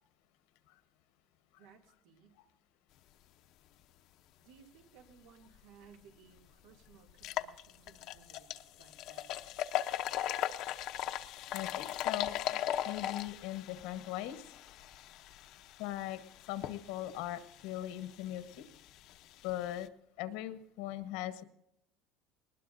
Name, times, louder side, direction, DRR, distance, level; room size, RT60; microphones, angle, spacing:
voice 1, 1.5-2.4 4.4-8.5 8.8-9.4, right 6 dB, 85° right, 4 dB, 2.6 m, -60 dB
sound 1, 5.8-5.9 6.4-6.5 7.1-19.9, left 12 dB, 50° left, 0.7 m, -39 dB
voice 2, 11.5-14.4 15.8-16.2 16.5-18.7 19.4-19.9 20.2-21.4, left 13 dB, 75° left, 11 dB, 1.1 m, -40 dB
19.5 x 19.5 x 2.6 m, 0.78 s
cardioid pair, 160°, 0 cm